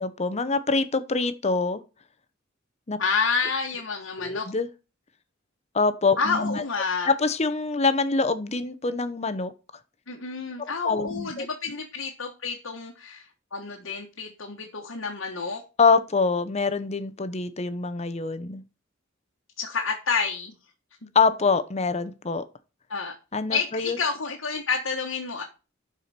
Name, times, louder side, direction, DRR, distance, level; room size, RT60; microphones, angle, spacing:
voice 1, 0.0-1.8 2.9-3.0 4.2-4.7 5.7-6.6 7.0-9.5 10.6-11.5 15.8-18.6 21.1-22.4 23.3-24.0, left 4 dB, 35° left, 0.8 m, -25 dB
voice 2, 3.0-4.5 6.2-7.1 10.1-15.6 19.6-20.5 22.9-23.1 23.5-25.4, left 5 dB, 80° left, 1.4 m, -29 dB
11.5 x 4.9 x 4.3 m
head